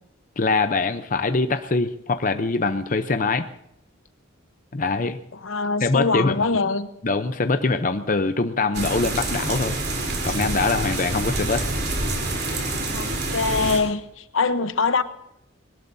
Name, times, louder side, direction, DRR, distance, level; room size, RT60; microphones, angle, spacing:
voice 1, 0.4-3.5 4.7-5.2 5.8-6.5 7.0-9.8 10.2-11.7, left 3 dB, 40° left, 8 dB, 0.7 m, -23 dB
voice 2, 5.3-6.9 12.9-15.0, left 4 dB, 75° left, 11 dB, 1.0 m, -23 dB
sound 1, 8.7-13.8, right 2 dB, 50° right, 3.6 m, -27 dB
22.0 x 19.0 x 2.7 m, 0.80 s
head